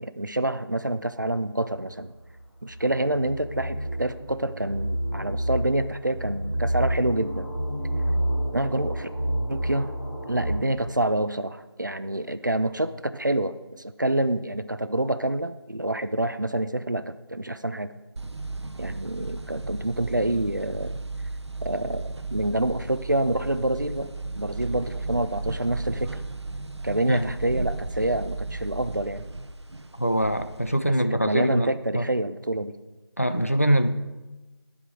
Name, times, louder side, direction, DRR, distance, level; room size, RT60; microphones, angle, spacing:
voice 1, 0.0-2.1 2.6-7.5 8.5-9.1 9.5-9.9 10.3-17.9 18.8-21.0 21.6-24.1 24.4-26.2 26.8-29.3 30.8-32.7, right 1 dB, 45° right, 12 dB, 0.4 m, -27 dB
sound 1, 1.9-10.6, right 1 dB, 15° left, 0.9 m, -29 dB
sound 2, 18.2-30.8, right 3 dB, 85° right, 0.7 m, -35 dB
voice 2, 30.0-32.1 33.2-33.9, right 1 dB, 35° left, 10 dB, 0.4 m, -24 dB
15.0 x 5.0 x 4.9 m, 1.1 s
figure-of-eight pair, 180°, 14 cm